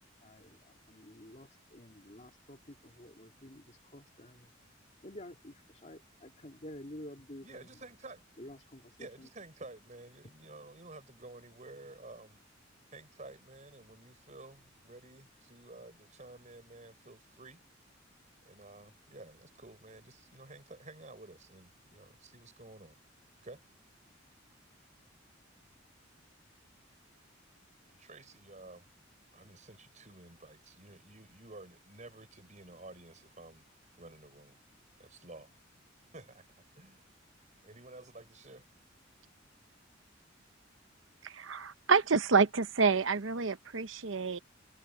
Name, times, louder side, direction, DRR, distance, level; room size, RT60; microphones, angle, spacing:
voice 1, 0.0-4.5 5.0-7.7 8.4-9.3, left 1 dB, 35° left, 3.0 m, -50 dB
voice 2, 7.4-8.3 8.8-12.4 12.9-17.6 18.4-23.0 23.4-23.6 27.9-28.9 29.3-33.6 34.0-34.6 35.0-35.5 36.1-37.1 37.6-38.7, right 2 dB, 40° right, 5.5 m, -52 dB
voice 3, 41.2-44.4, right 5 dB, 80° right, 1.0 m, -28 dB
head